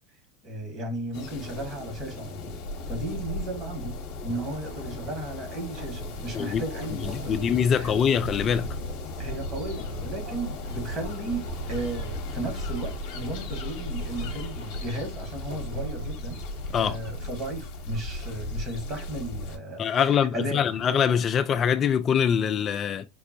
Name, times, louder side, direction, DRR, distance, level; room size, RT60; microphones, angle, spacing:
voice 1, 0.4-2.6 2.9-3.9 4.2-7.9 9.2-16.4 16.8-20.7, right 2 dB, 35° right, 1.6 m, -35 dB
sound 1, 1.1-19.6, left 2 dB, 55° left, 0.9 m, -36 dB
sound 2, 4.3-17.6, right 1 dB, 80° right, 1.9 m, -42 dB
voice 2, 7.3-8.8 16.7-17.0 19.8-23.1, left 8 dB, 35° left, 0.3 m, -23 dB
5.1 x 2.0 x 2.9 m
hypercardioid pair, 90°, 0 cm